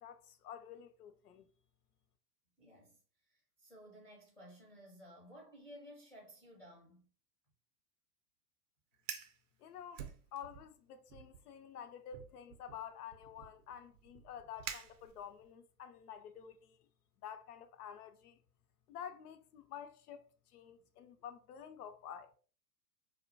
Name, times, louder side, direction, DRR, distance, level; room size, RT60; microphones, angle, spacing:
voice 1, 0.0-1.5 9.6-16.9 17.2-18.4 18.9-22.3, left 8 dB, 65° left, 0.5 m, -50 dB
voice 2, 2.6-7.1, equal, 5° left, 0.4 m, -56 dB
Fire, 8.9-9.4 9.9-10.7 11.1-11.4 12.1-15.5, right 8 dB, 50° right, 0.5 m, -48 dB
2.4 x 2.1 x 2.6 m
hypercardioid pair, 110°, 50 cm